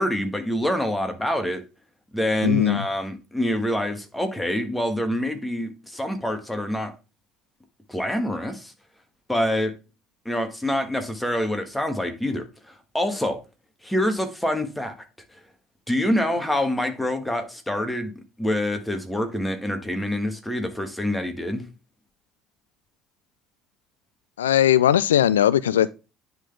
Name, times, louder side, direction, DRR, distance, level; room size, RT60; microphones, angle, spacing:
voice 1, 0.0-1.6 2.1-6.9 7.9-8.7 9.3-9.7 10.2-13.4 13.8-14.9 15.9-18.1 18.4-21.6, left 1 dB, 5° left, 1.5 m, -26 dB
voice 2, 2.4-2.8 24.4-25.9, left 11 dB, 75° left, 0.3 m, -19 dB
9.8 x 3.9 x 3.4 m
figure-of-eight pair, 55°, 0 cm